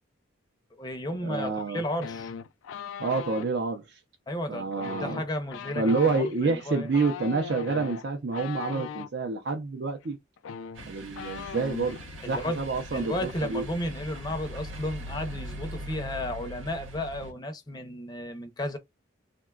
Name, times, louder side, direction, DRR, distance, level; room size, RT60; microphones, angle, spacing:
voice 1, 0.7-2.3 4.3-6.9 12.2-18.8, left 1 dB, 20° left, 0.5 m, -33 dB
voice 2, 1.2-1.8 3.0-4.0 4.5-5.2 5.8-10.2 10.8-12.0 12.3-13.2 13.5-13.6, right 4 dB, 60° right, 0.5 m, -28 dB
sound 1, 2.0-3.5 4.7-9.1 10.0-10.1 10.4-12.0 12.3-12.6 12.8-13.3, left 7 dB, 90° left, 0.3 m, -39 dB
sound 2, 10.7-17.3, equal, 85° right, 0.9 m, -41 dB
3.7 x 2.2 x 2.3 m
head